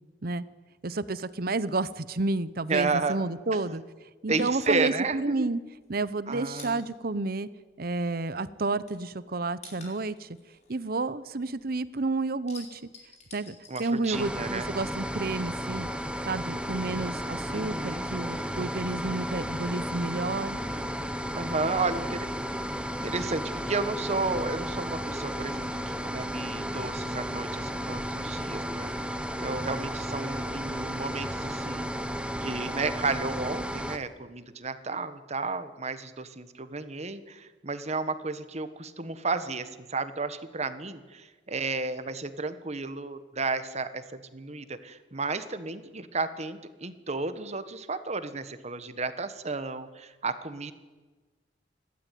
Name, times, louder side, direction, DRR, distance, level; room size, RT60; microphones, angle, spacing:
voice 1, 0.8-3.8 4.2-5.6 5.9-7.5 7.8-10.4 10.7-12.8 13.3-15.9 16.3-20.6, right 3 dB, 55° right, 16 dB, 0.9 m, -30 dB
voice 2, 2.7-3.2 3.5-3.8 4.3-5.5 6.3-6.8 13.7-14.7 17.5-18.1 21.3-22.3 23.0-31.9 32.4-50.7, right 3 dB, 40° right, 11 dB, 1.4 m, -32 dB
sound 1, 5.4-8.2 8.5-11.8 12.1-14.7 14.9-16.0, left 4 dB, 40° left, 5.4 m, -51 dB
sound 2, 14.1-34.0, equal, 5° right, 1.3 m, -33 dB
29.5 x 12.5 x 9.3 m, 1.3 s
head